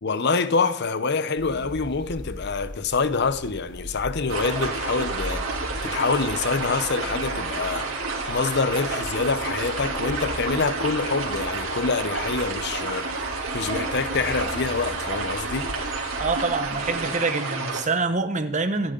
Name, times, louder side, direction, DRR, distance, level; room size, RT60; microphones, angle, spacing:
voice 1, 0.0-7.9 8.3-13.1 13.5-15.7, left 4 dB, 55° left, 0.8 m, -26 dB
sound 1, 1.4-17.1, left 1 dB, 20° left, 4.1 m, -39 dB
sound 2, 4.3-17.8, right 3 dB, 75° right, 3.1 m, -30 dB
voice 2, 16.2-18.9, right 3 dB, 35° right, 1.1 m, -26 dB
26.5 x 10.5 x 3.9 m
head